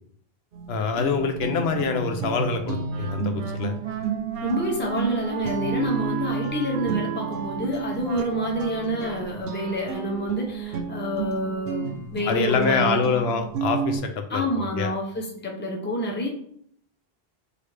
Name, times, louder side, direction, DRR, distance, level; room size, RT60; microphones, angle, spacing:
sound 1, 0.5-14.0, right 6 dB, 70° right, 0.8 m, -32 dB
voice 1, 0.7-3.8 12.3-14.9, left 5 dB, 85° left, 6 dB, 0.9 m, -25 dB
Wind instrument woodwind instrument, 2.9-10.3, right 7 dB, 55° right, 0.4 m, -35 dB
voice 2, 4.4-13.0 14.3-16.3, equal, 15° left, 0 dB, 0.5 m, -28 dB
4.9 x 2.7 x 3.3 m, 0.66 s
omnidirectional pair, 1.0 m